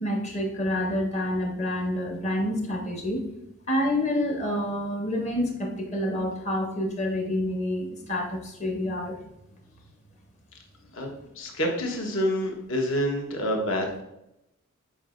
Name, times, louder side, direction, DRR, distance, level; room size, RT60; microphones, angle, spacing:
voice 1, 0.0-3.2 3.7-9.2, left 1 dB, 30° left, 1 dB, 0.9 m, -28 dB
voice 2, 10.9-14.0, equal, 60° left, 1 dB, 1.1 m, -28 dB
7.7 x 5.0 x 2.5 m, 0.84 s
head